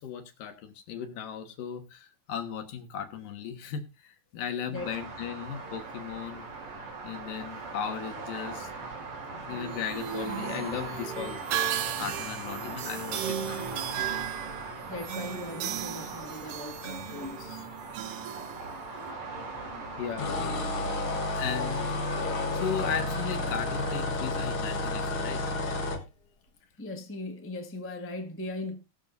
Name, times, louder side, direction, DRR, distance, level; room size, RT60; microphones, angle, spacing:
voice 1, 0.0-6.5 7.0-8.7 9.5-13.7 20.0-20.3 21.4-22.0 22.5-25.5, left 8 dB, 90° left, 3.1 m, -36 dB
sound 1, 4.7-24.0, right 3 dB, 60° right, 4.2 m, -40 dB
sound 2, 9.6-19.1, right 10 dB, 85° right, 2.6 m, -36 dB
voice 2, 14.9-17.7 26.8-28.8, left 2 dB, 10° left, 0.6 m, -39 dB
sound 3, 20.2-26.0, left 2 dB, 50° left, 2.0 m, -31 dB
20.5 x 7.2 x 2.6 m
omnidirectional pair, 3.7 m